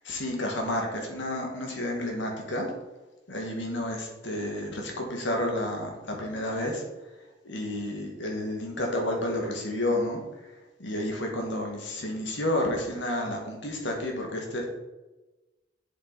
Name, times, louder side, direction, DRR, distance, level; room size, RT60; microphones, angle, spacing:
voice 1, 0.0-2.7 3.3-6.8 7.4-10.5 10.8-14.6, left 1 dB, 80° left, 1 dB, 2.2 m, -31 dB
7.9 x 7.3 x 4.3 m, 1.1 s
head